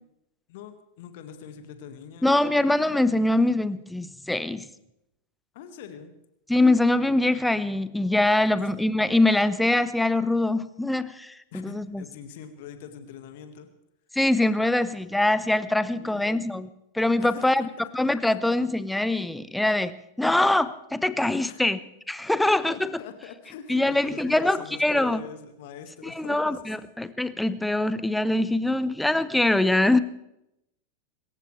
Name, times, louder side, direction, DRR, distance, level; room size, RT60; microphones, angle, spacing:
voice 1, 0.5-2.3 5.5-6.1 8.6-8.7 11.5-13.7 15.9-16.2 17.2-17.7 21.5-21.7 22.4-26.7, left 8 dB, 50° left, 8 dB, 1.8 m, -43 dB
voice 2, 2.2-4.7 6.5-12.0 14.1-16.7 16.9-17.7 17.9-21.8 22.1-22.9 23.7-25.2 26.2-30.0, left 2 dB, 5° left, 15 dB, 0.8 m, -23 dB
25.0 x 14.5 x 3.3 m, 0.82 s
figure-of-eight pair, 90°, 0 cm